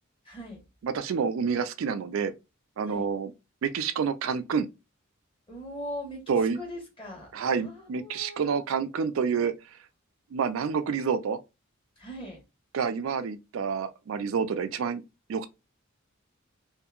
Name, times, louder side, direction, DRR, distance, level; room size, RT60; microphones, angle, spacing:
voice 1, 0.2-0.6 2.8-3.1 5.5-7.3 7.5-8.5 12.0-12.4, left 1 dB, 25° left, 1.2 m, -40 dB
voice 2, 0.8-2.3 2.8-3.3 3.6-4.7 6.3-6.6 7.3-9.5 10.3-11.4 12.7-15.0 15.3-15.5, right 6 dB, 75° right, 0.4 m, -28 dB
2.7 x 2.5 x 2.3 m
head